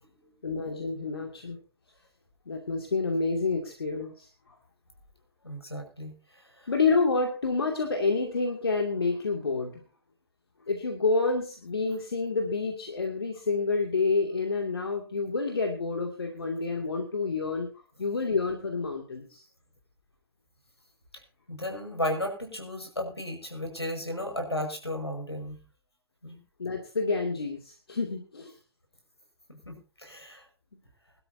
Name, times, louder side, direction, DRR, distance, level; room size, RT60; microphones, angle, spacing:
voice 1, 0.4-1.6 2.5-4.5 6.7-9.8 10.7-17.7 18.0-19.4 26.6-28.6, left 4 dB, 70° left, 3 dB, 2.6 m, -28 dB
voice 2, 5.4-6.1 6.6-6.7 21.5-25.6 26.2-26.4 29.7-30.4, left 1 dB, 90° left, 3 dB, 5.9 m, -34 dB
22.5 x 12.5 x 2.8 m, 0.36 s
figure-of-eight pair, 120°, 13 cm